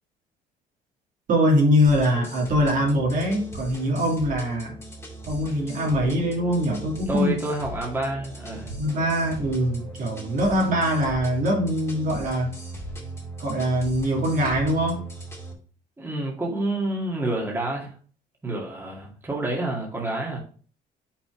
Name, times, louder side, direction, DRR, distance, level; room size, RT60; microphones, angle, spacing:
voice 1, 1.3-4.7 5.3-7.3 8.8-12.5 13.4-15.1, equal, 55° right, -1 dB, 2.4 m, -23 dB
sound 1, 1.8-15.5, right 1 dB, 15° left, 2.3 m, -39 dB
voice 2, 7.1-8.8 16.0-17.9 18.4-20.4, right 2 dB, 15° right, -2 dB, 2.1 m, -28 dB
5.9 x 4.3 x 4.8 m, 0.43 s
cardioid pair, 110°, 17 cm